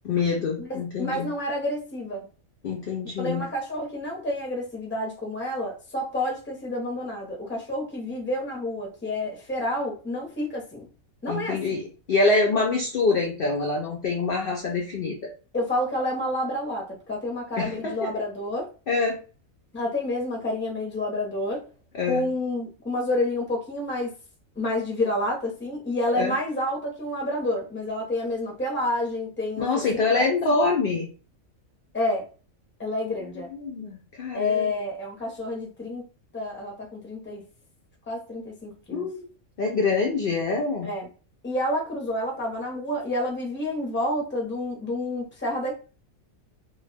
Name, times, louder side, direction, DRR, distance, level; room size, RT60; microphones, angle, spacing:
voice 1, 0.0-1.3 2.6-3.5 11.3-15.2 17.6-18.1 18.9-19.2 21.9-22.3 26.1-26.3 29.6-31.1 33.5-34.7 38.9-39.3 39.6-40.9, left 3 dB, 65° left, 0.5 m, -25 dB
voice 2, 0.6-2.2 3.2-10.9 11.2-11.8 15.5-18.7 19.7-21.6 22.1-24.1 24.6-29.7 30.1-30.2 31.9-32.2 32.8-33.5 34.3-36.0 36.3-37.4 38.1-39.1 40.8-41.1 41.4-45.7, left 1 dB, 10° left, 0.6 m, -29 dB
2.3 x 2.2 x 3.3 m
omnidirectional pair, 1.5 m